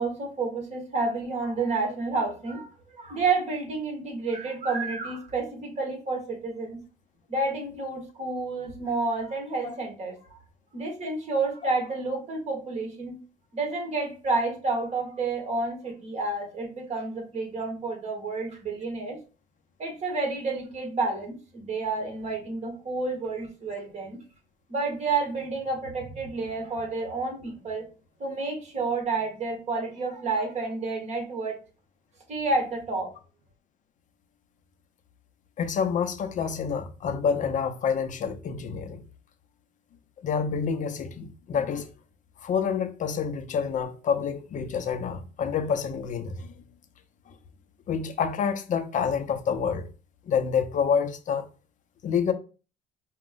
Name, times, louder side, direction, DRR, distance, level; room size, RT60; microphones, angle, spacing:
voice 1, 0.0-6.8 7.3-10.4 10.7-13.2 13.5-19.2 19.8-24.2 24.7-27.8 28.2-31.6 32.3-33.1, right 3 dB, 40° right, 1.8 m, -30 dB
voice 2, 35.6-39.0 40.2-41.9 42.4-46.5 47.9-49.9 50.3-51.5 52.0-52.3, left 6 dB, 50° left, 0.7 m, -28 dB
4.9 x 2.3 x 3.7 m
cardioid pair, 110°, 17 cm